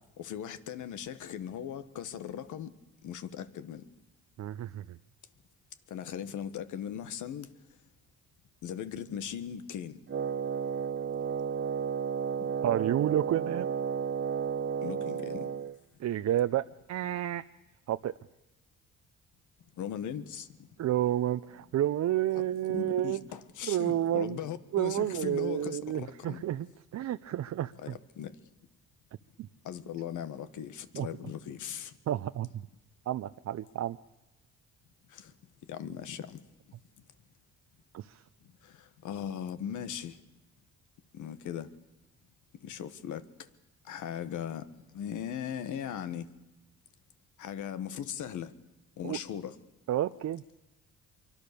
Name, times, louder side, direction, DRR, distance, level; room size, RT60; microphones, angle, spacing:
voice 1, 0.2-2.7 3.0-3.9 5.9-7.5 8.6-10.0 12.4-12.5 14.8-15.5 19.8-20.7 22.7-26.4 27.8-28.4 29.6-32.0 35.1-35.3 35.6-36.4 38.6-40.2 41.1-41.7 42.6-43.5 43.8-44.7 44.9-46.3 47.4-48.5 49.0-49.6, left 9 dB, 80° left, 1.6 m, -39 dB
voice 2, 4.4-5.0 12.6-13.7 16.0-17.4 17.9-18.1 20.8-23.2 23.7-24.4 24.7-26.7 26.9-27.7 29.4-29.5 30.9-31.1 32.1-32.5 33.1-34.0 37.9-38.2 49.0-49.2 49.9-50.4, right 12 dB, 60° right, 0.7 m, -30 dB
Wind instrument woodwind instrument, 10.1-15.8, right 7 dB, 40° right, 1.0 m, -32 dB
25.0 x 24.0 x 6.9 m
cardioid pair, 90°, 30 cm